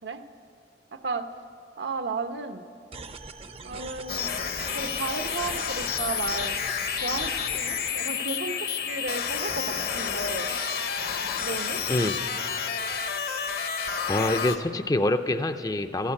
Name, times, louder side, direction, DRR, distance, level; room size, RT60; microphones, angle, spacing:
voice 1, 0.9-1.3 1.8-2.7 3.6-4.3 4.7-6.6 7.0-10.5 11.4-11.8, right 3 dB, 75° right, 7 dB, 0.9 m, -33 dB
sound 1, 2.9-7.9, right 3 dB, 35° right, 0.6 m, -41 dB
sound 2, 4.1-14.6, left 7 dB, 60° left, 0.9 m, -30 dB
voice 2, 11.9-12.2 14.1-16.1, left 1 dB, 20° left, 9 dB, 0.4 m, -26 dB
14.5 x 11.5 x 8.7 m, 2.3 s
head